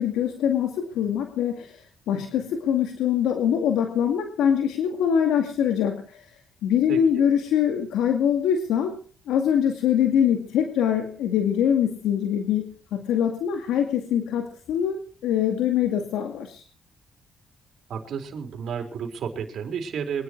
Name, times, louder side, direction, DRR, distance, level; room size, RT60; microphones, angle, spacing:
voice 1, 0.0-6.2 6.6-9.0 9.3-12.6 12.9-16.6, left 9 dB, 85° left, 5 dB, 2.3 m, -23 dB
voice 2, 6.9-7.4 17.9-20.2, right 7 dB, 65° right, 4 dB, 4.2 m, -32 dB
24.0 x 11.0 x 4.7 m, 0.42 s
cardioid pair, 90°, 0 cm